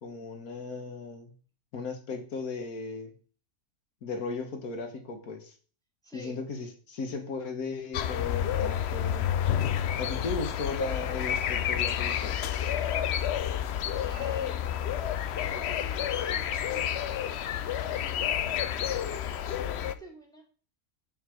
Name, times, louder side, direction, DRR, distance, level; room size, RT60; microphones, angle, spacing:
voice 1, 0.0-1.3 1.7-3.1 4.0-5.5 6.1-9.4 10.0-12.4, left 3 dB, 80° left, 5 dB, 1.8 m, -36 dB
voice 2, 6.0-6.4 13.9-14.9 15.4-16.9 17.7-20.4, equal, ahead, -1 dB, 1.9 m, -50 dB
sound 1, 7.9-20.0, left 10 dB, 65° left, 0.7 m, -30 dB
7.3 x 4.0 x 6.4 m, 0.40 s
omnidirectional pair, 1.5 m